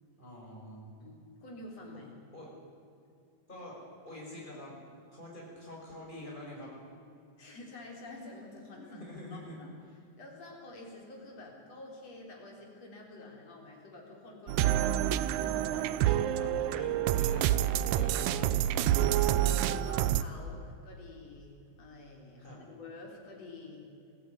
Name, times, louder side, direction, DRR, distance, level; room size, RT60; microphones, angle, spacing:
voice 1, 0.2-0.9 2.3-2.5 3.5-3.8 4.0-4.8 5.1-6.7 8.7-9.6 16.4-18.8 22.4-22.6, left 1 dB, 15° left, -3 dB, 6.5 m, -46 dB
voice 2, 1.0-2.1 7.4-9.0 9.3-9.7 10.2-16.0 16.4-16.9 19.3-23.9, left 2 dB, 60° left, 0 dB, 5.0 m, -48 dB
sound 1, 14.5-20.2, right 12 dB, 85° right, 2.1 m, -28 dB
21.5 x 14.5 x 9.7 m, 2.5 s
omnidirectional pair, 3.3 m